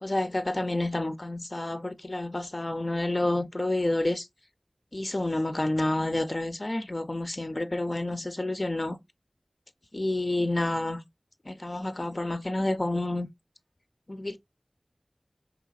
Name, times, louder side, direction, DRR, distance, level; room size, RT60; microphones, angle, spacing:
voice 1, 0.0-4.3 4.9-9.0 9.9-11.0 11.5-13.3 14.1-14.4, left 2 dB, 50° left, 0.5 m, -29 dB
4.7 x 3.5 x 2.3 m
wide cardioid pair, 40°, 0 cm